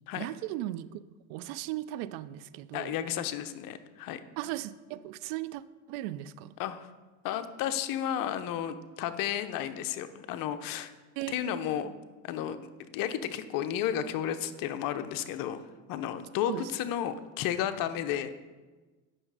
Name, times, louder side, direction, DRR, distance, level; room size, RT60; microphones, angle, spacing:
voice 1, 0.2-0.9 1.3-2.9 4.4-5.6 5.9-6.5 11.2-11.6 16.5-16.6, right 15 dB, 70° right, 16 dB, 0.5 m, -37 dB
voice 2, 2.7-4.2 6.6-6.9 7.2-10.9 11.3-11.9 12.2-15.6 15.9-18.3, left 10 dB, 60° left, 10 dB, 0.8 m, -33 dB
8.9 x 6.3 x 4.8 m, 1.3 s
supercardioid pair, 100°, 39 cm